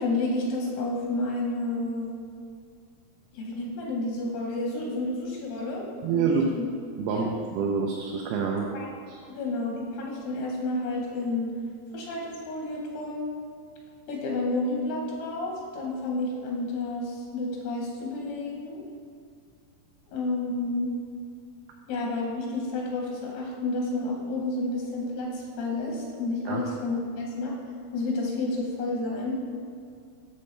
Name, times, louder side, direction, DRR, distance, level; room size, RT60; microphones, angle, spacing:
voice 1, 0.0-2.1 3.3-5.9 6.1-6.6 7.1-7.3 8.7-8.9 9.4-11.5 11.9-13.2 14.1-18.8 20.1-20.9 21.9-27.5 27.9-29.4, left 2 dB, 90° left, -2 dB, 3.1 m, -30 dB
voice 2, 6.0-6.5 7.0-8.7 9.1-9.2 26.5-26.6, right 6 dB, 90° right, -1 dB, 2.6 m, -27 dB
7.5 x 7.1 x 3.2 m, 2.2 s
omnidirectional pair, 4.4 m